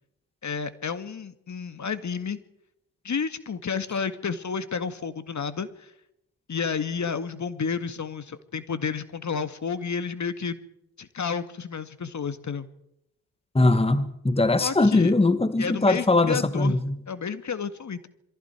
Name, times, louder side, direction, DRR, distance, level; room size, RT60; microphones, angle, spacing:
voice 1, 0.4-2.4 3.0-5.9 6.5-10.6 11.0-12.7 14.6-15.1 15.6-16.8 17.1-18.1, left 6 dB, 40° left, 11 dB, 2.0 m, -31 dB
voice 2, 13.5-17.0, left 2 dB, 15° left, 12 dB, 1.7 m, -21 dB
27.5 x 23.0 x 4.6 m, 0.83 s
hypercardioid pair, 45°, 43 cm